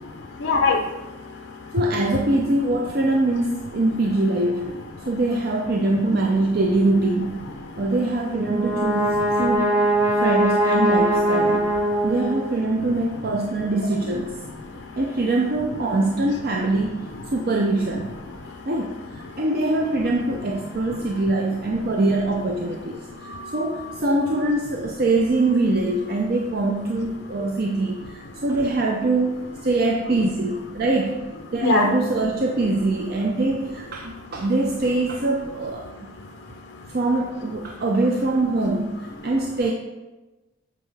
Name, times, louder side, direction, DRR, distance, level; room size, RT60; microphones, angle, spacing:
voice 1, 0.0-1.8 5.0-5.1 7.7-7.9 9.2-9.3 10.0-10.2 11.5-11.6 11.9-12.1 14.6-15.0 18.4-18.7 19.3-19.4 20.9-21.0 23.1-23.9 27.4-27.5 31.6-31.9 36.4-36.9, left 4 dB, 65° left, 1 dB, 0.6 m, -28 dB
voice 2, 1.7-4.7 5.1-7.5 7.8-9.7 10.2-11.7 12.0-14.4 15.0-18.1 18.7-29.3 29.6-31.2 31.5-35.9 36.9-39.7, right 2 dB, 45° right, 1 dB, 0.5 m, -23 dB
Brass instrument, 8.3-12.7, right 1 dB, 85° right, 1.3 m, -21 dB
7.6 x 5.2 x 3.4 m, 1.1 s
head